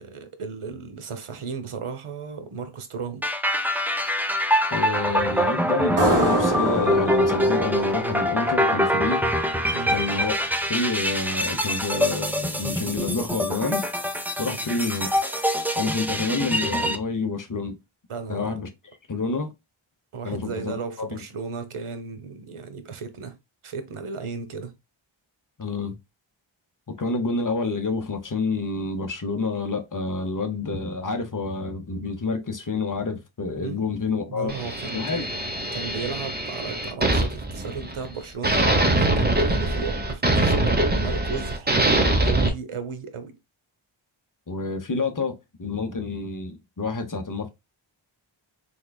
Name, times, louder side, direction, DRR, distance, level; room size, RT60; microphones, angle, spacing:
voice 1, 0.0-3.3 9.7-10.0 14.5-14.7 18.1-18.7 20.1-23.3 23.6-24.7 33.6-33.8 34.2-35.3 35.7-43.3, right 5 dB, 80° right, 0.9 m, -35 dB
sound 1, 3.2-17.0, equal, 5° right, 0.4 m, -24 dB
voice 2, 4.7-9.2 9.9-10.4 10.7-13.9 14.4-15.1 15.7-17.8 18.3-18.7 19.1-19.5 20.2-21.2 25.6-26.0 26.9-34.6 34.9-35.3 44.5-47.5, left 3 dB, 40° left, 0.8 m, -28 dB
sound 2, 6.0-9.3, right 1 dB, 40° right, 1.9 m, -26 dB
sound 3, 34.5-38.1 38.4-42.5, right 1 dB, 20° right, 0.9 m, -23 dB
3.7 x 3.5 x 2.2 m
wide cardioid pair, 85°, 49 cm